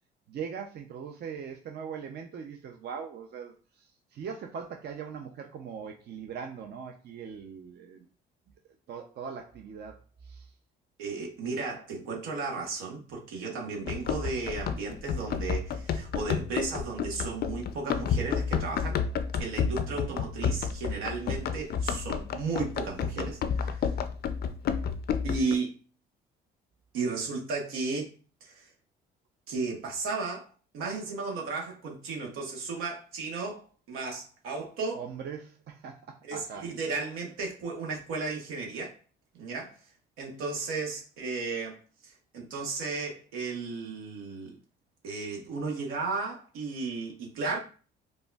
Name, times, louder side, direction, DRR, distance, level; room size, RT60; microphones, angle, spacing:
voice 1, 0.3-8.1 8.9-10.0 10.2-10.5 20.0-20.2 34.9-36.7, right 6 dB, 50° right, 0.6 m, -41 dB
voice 2, 11.0-19.0 19.4-23.9 25.2-25.7 26.9-28.1 28.4-28.7 29.5-30.5 30.7-35.0 36.2-39.0 39.3-39.7 40.2-44.6 45.0-47.6, right 4 dB, 80° right, 1.1 m, -34 dB
Run, 13.9-25.6, left 6 dB, 50° left, 0.4 m, -30 dB
5.1 x 2.2 x 2.3 m
supercardioid pair, 75°, 21 cm